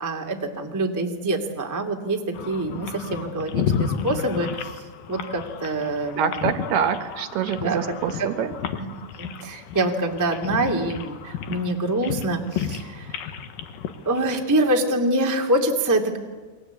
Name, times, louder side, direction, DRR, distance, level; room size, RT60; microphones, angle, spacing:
voice 1, 0.0-4.5 5.1-6.7 7.6-7.8 8.2-8.3 9.2-13.1 14.0-16.2, right 1 dB, 10° right, 2 dB, 1.2 m, -25 dB
sound 1, 2.3-14.7, left 7 dB, 65° left, 2.8 m, -32 dB
voice 2, 6.2-8.5, right 7 dB, 70° right, 9 dB, 3.0 m, -25 dB
29.0 x 24.5 x 8.4 m, 1.3 s
omnidirectional pair, 5.2 m